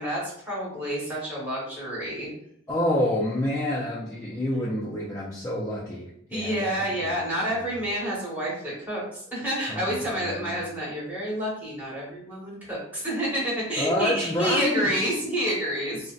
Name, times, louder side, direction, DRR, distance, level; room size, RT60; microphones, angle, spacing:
voice 1, 0.0-2.3 6.3-16.1, equal, 10° right, -7 dB, 1.1 m, -29 dB
voice 2, 2.7-7.1 7.5-7.6 9.7-10.6 13.8-15.1, left 1 dB, 15° left, -6 dB, 0.3 m, -28 dB
3.8 x 2.1 x 2.4 m, 0.73 s
head